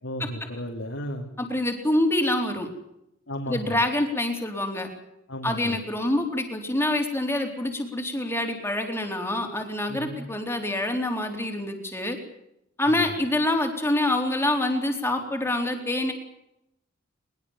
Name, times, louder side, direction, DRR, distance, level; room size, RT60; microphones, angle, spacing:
voice 1, 0.0-1.3 3.3-3.8 5.3-5.8 9.9-10.2 12.9-13.2, equal, 70° left, -2 dB, 3.1 m, -34 dB
voice 2, 1.4-2.7 3.5-4.9 5.4-12.2 12.8-16.1, left 1 dB, 10° left, 3 dB, 4.0 m, -26 dB
22.0 x 21.0 x 7.4 m, 0.81 s
head